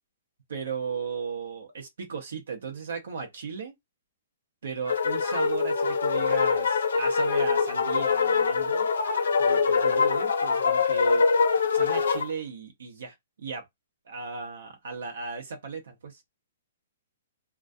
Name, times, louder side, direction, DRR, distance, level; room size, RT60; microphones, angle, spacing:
voice 1, 0.5-3.7 4.6-8.9 9.4-11.2 11.7-13.6 14.1-16.2, right 5 dB, 80° right, 0.7 m, -36 dB
sound 1, 4.8-12.3, left 5 dB, 85° left, 0.6 m, -24 dB
2.3 x 2.2 x 2.5 m
hypercardioid pair, 160°, 0 cm